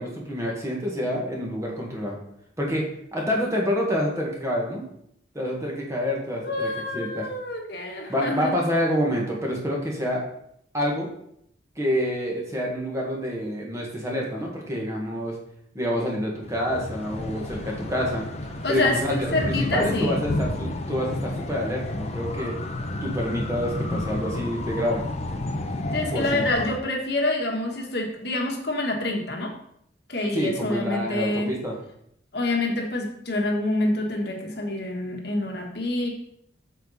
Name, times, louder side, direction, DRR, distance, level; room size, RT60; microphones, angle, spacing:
voice 1, 0.0-2.2 2.6-4.9 5.3-7.2 8.1-10.2 10.7-11.1 11.8-15.4 15.7-18.3 18.7-22.5 23.0-25.0 26.1-26.4 30.3-31.7, equal, 15° right, -2 dB, 1.8 m, -27 dB
voice 2, 6.4-8.5 18.6-20.2 25.9-29.5 30.1-31.5 32.3-36.1, left 2 dB, 55° left, 1 dB, 1.5 m, -27 dB
sound 1, 16.4-26.8, left 1 dB, 35° left, 0.8 m, -31 dB
8.2 x 7.0 x 4.1 m, 0.71 s
head